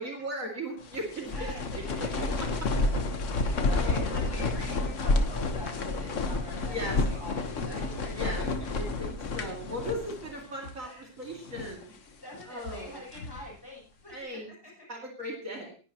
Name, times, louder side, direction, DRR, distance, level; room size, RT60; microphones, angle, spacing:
voice 1, 0.0-2.1 3.4-3.5 3.8-4.5 6.6-7.0 8.1-8.4 8.7-11.9 12.5-13.0 14.1-14.5 14.9-15.7, equal, 55° right, 0 dB, 2.9 m, -38 dB
sound 1, 0.8-10.4 10.6-10.7 11.3-11.8 12.4-13.5, left 2 dB, 50° left, 1.5 m, -30 dB
voice 2, 1.3-2.5 3.4-8.5 8.8-8.9 10.8-11.1 12.2-14.7, left 1 dB, 15° left, -5 dB, 7.7 m, -45 dB
19.5 x 11.0 x 3.0 m, 0.37 s
omnidirectional pair, 1.7 m